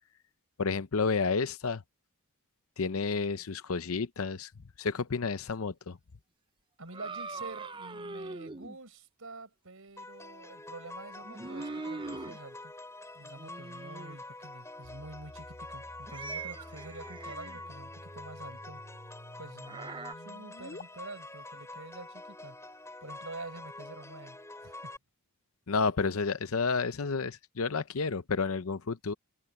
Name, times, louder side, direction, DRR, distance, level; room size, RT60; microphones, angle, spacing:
voice 1, 0.6-1.8 2.8-4.5 4.8-6.0 25.7-29.1, left 4 dB, 70° left, 0.7 m, -30 dB
voice 2, 6.8-12.7 13.1-18.8 19.4-22.6 23.0-24.9, right 2 dB, 65° right, 5.7 m, -47 dB
sound 1, 6.9-8.8 11.2-12.4 13.2-14.2 16.1-17.7 19.7-20.1, right 3 dB, 20° right, 0.7 m, -41 dB
sound 2, 10.0-25.0, left 2 dB, 15° left, 5.3 m, -47 dB
sound 3, 14.8-20.8, left 1 dB, 40° left, 2.3 m, -51 dB
head